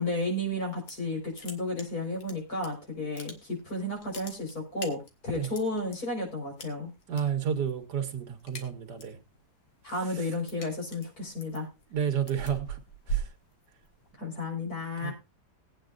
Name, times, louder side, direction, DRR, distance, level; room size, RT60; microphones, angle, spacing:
voice 1, 0.0-6.9 9.8-11.7 14.2-15.1, left 2 dB, 55° left, 5.3 m, -33 dB
sound 1, 0.6-1.1 1.3-2.7 3.0-3.7 4.0-6.0 6.6-7.2 7.5-7.8 8.1-9.2 9.6-14.1, right 5 dB, 75° left, 2.2 m, -39 dB
voice 2, 7.1-9.2 11.9-12.8 13.1-13.3 15.0-15.1, right 8 dB, 70° right, 1.8 m, -31 dB
20.5 x 9.0 x 2.5 m
omnidirectional pair, 1.8 m